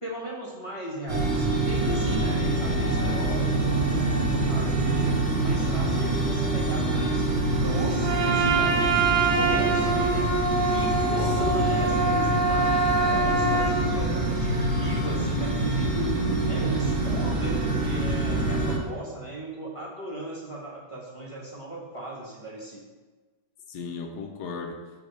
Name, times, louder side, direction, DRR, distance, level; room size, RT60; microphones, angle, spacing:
voice 1, 0.0-5.1 5.4-7.2 7.6-10.3 10.7-16.1 16.5-22.8, right 1 dB, 25° left, -4 dB, 0.8 m, -36 dB
sound 1, 1.1-18.8, right 2 dB, 20° right, 1.1 m, -25 dB
voice 2, 2.4-2.9 11.2-11.6 23.7-24.8, left 4 dB, 70° left, 4 dB, 1.2 m, -37 dB
Trumpet, 8.0-13.8, right 3 dB, 60° right, 0.6 m, -25 dB
7.4 x 2.8 x 5.1 m, 1.3 s
omnidirectional pair, 2.1 m